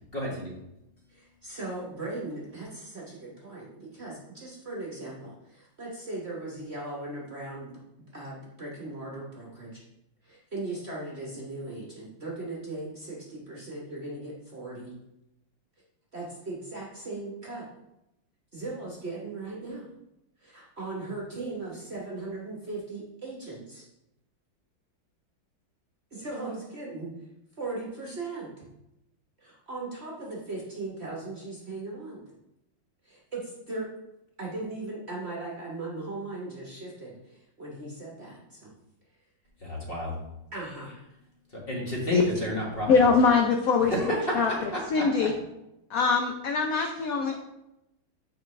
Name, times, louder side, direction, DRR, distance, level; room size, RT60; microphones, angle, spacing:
voice 1, 0.1-0.5 39.6-40.1 41.5-42.9 43.9-44.6 45.0-45.1, equal, 30° left, -3 dB, 1.6 m, -31 dB
voice 2, 1.1-7.8 8.1-9.8 10.2-14.9 16.1-17.6 18.5-19.9 20.4-23.8 26.1-27.1 27.6-28.6 29.4-32.2 33.0-33.9 34.4-38.7 40.5-41.1, right 2 dB, 40° right, -4 dB, 1.1 m, -38 dB
voice 3, 42.9-43.9 44.3-44.5 44.9-45.3 45.9-47.5, left 5 dB, 75° left, 3 dB, 0.8 m, -22 dB
7.6 x 4.9 x 3.2 m, 0.89 s
omnidirectional pair, 2.2 m